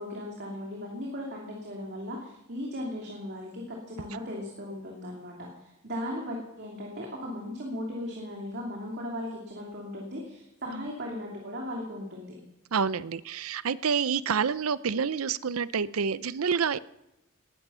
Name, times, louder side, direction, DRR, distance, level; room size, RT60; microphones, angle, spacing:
voice 1, 0.0-12.3, left 1 dB, 55° right, -1 dB, 2.9 m, -37 dB
voice 2, 12.7-16.8, right 6 dB, 85° right, 17 dB, 0.6 m, -28 dB
19.0 x 13.0 x 5.6 m, 0.88 s
head